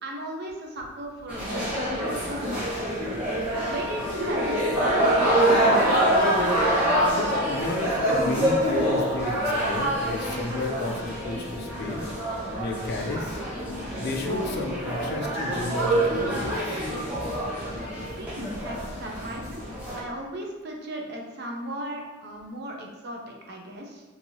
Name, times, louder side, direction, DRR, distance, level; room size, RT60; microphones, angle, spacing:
voice 1, 0.0-2.9 3.6-6.2 18.2-19.7 19.9-24.0, right 1 dB, 55° right, 1 dB, 0.5 m, -36 dB
sound 1, 1.3-20.0, right 1 dB, 5° right, 0.9 m, -26 dB
sound 2, 3.5-18.2, left 1 dB, 90° right, 1.4 m, -41 dB
voice 2, 7.2-13.4 14.0-16.8, left 2 dB, 55° left, 2 dB, 0.4 m, -33 dB
2.9 x 2.7 x 2.7 m, 1.3 s
head